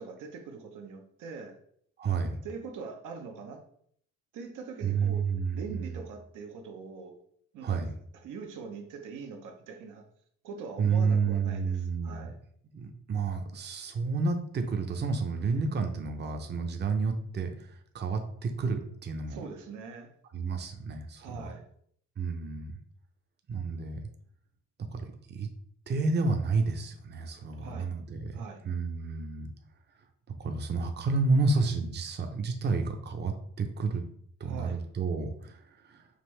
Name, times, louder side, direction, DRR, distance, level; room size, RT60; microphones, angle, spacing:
voice 1, 0.0-1.5 2.4-3.6 4.3-5.2 5.5-7.1 7.5-7.9 8.2-10.0 10.4-12.3 19.3-20.1 21.2-21.6 27.6-27.9 28.3-28.6 34.4-34.8, right 5 dB, 85° right, 3 dB, 0.8 m, -42 dB
voice 2, 2.0-2.4 4.8-5.6 7.6-7.9 10.8-12.3 12.7-19.4 20.3-21.5 22.2-22.8 23.5-24.0 24.9-25.5 25.9-29.5 30.4-34.0 34.4-36.1, right 4 dB, 35° right, 6 dB, 0.6 m, -30 dB
5.2 x 2.6 x 3.2 m, 0.64 s
cardioid pair, 90°, 30 cm